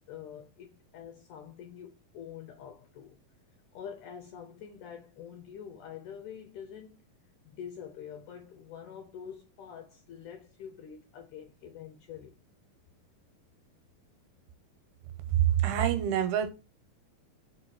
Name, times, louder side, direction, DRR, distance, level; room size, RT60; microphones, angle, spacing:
voice 1, 0.1-3.2 3.7-7.0 7.5-12.4, left 8 dB, 80° left, 1.9 m, -46 dB
voice 2, 15.6-16.5, right 10 dB, 85° right, 2.7 m, -27 dB
4.9 x 4.5 x 4.7 m
omnidirectional pair, 4.4 m